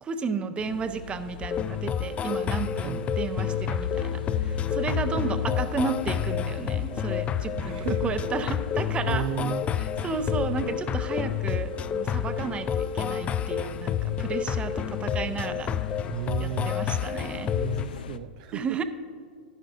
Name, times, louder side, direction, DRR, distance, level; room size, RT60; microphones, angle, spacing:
voice 1, 0.0-9.3 9.8-15.9 16.4-17.5 18.5-18.8, right 5 dB, 20° right, 10 dB, 0.7 m, -33 dB
sound 1, 0.6-18.2, left 6 dB, 75° left, 0.6 m, -38 dB
sound 2, 1.4-17.9, left 8 dB, 25° left, 0.3 m, -29 dB
sound 3, 4.8-17.4, left 5 dB, 50° left, 1.0 m, -48 dB
voice 2, 4.9-5.3 7.6-8.1 9.1-9.7 14.1-14.2 16.1-16.7 17.5-18.8, right 12 dB, 50° right, 10 dB, 0.3 m, -34 dB
11.5 x 11.5 x 2.6 m, 2.2 s
hypercardioid pair, 110°, 5 cm